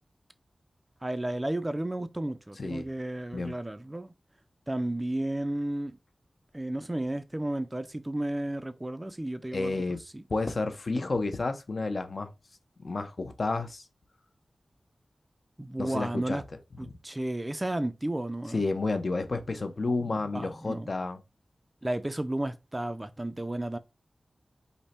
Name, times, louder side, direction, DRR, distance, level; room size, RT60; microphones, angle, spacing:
voice 1, 1.0-4.1 4.7-6.0 6.5-9.8 10.1-10.2 15.6-16.4 16.8-18.6 20.0-20.9 21.8-23.8, right 1 dB, 20° right, 0.4 m, -33 dB
voice 2, 2.6-2.9 3.3-3.5 9.5-10.0 10.3-12.3 12.8-13.8 15.8-16.4 16.8-17.0 18.5-21.2, left 3 dB, 55° left, 0.7 m, -31 dB
5.4 x 2.1 x 4.3 m
wide cardioid pair, 95°, 0 cm